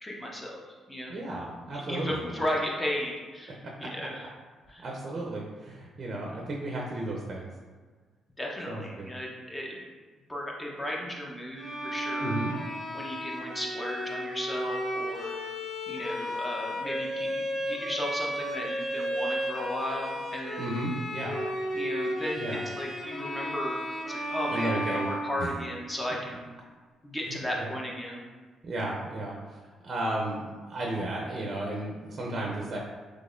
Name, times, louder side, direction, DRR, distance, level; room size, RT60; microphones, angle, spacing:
voice 1, 0.0-1.1 1.7-4.3 4.7-4.8 8.4-9.8 10.3-12.3 12.9-15.3 15.9-20.7 21.7-23.8 24.1-26.4 27.0-28.2, equal, 15° left, -2 dB, 0.8 m, -35 dB
voice 2, 1.1-2.1 3.8-3.9 4.8-7.5 8.7-9.1 12.2-12.5 20.6-21.4 22.4-22.6 24.5-25.0 25.4-25.5 27.3-27.7 28.6-32.8, right 1 dB, 40° right, -2 dB, 0.5 m, -34 dB
Bowed string instrument, 11.6-25.9, equal, 30° left, 1.2 m, -34 dB
3.9 x 3.1 x 2.5 m, 1.4 s
cardioid pair, 90°, 0 cm